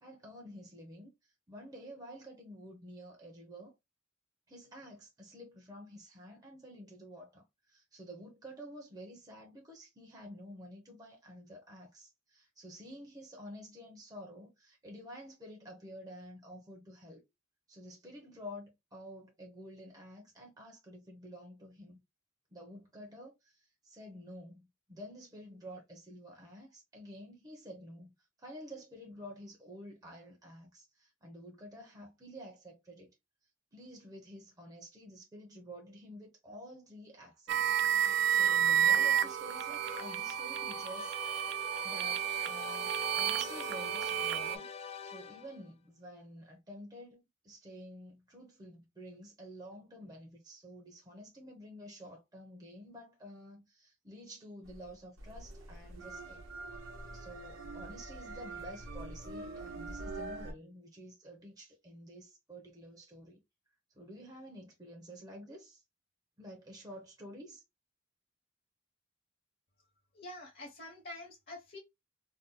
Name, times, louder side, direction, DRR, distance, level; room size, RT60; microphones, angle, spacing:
voice 1, 0.0-3.7 4.5-17.2 17.7-22.0 22.5-33.1 33.7-37.7 38.3-41.4 41.8-42.9 43.2-44.7 45.0-56.4 57.1-63.4 63.9-65.8 66.4-67.6, equal, 20° right, 0.6 m, -50 dB
sound 1, 37.5-44.6, right 9 dB, 60° right, 0.3 m, -31 dB
sound 2, 38.8-45.7, left 6 dB, 30° left, 0.3 m, -46 dB
sound 3, 54.6-60.5, right 2 dB, 85° right, 0.9 m, -44 dB
voice 2, 70.1-71.8, left 1 dB, 50° left, 0.8 m, -46 dB
2.6 x 2.2 x 3.6 m
head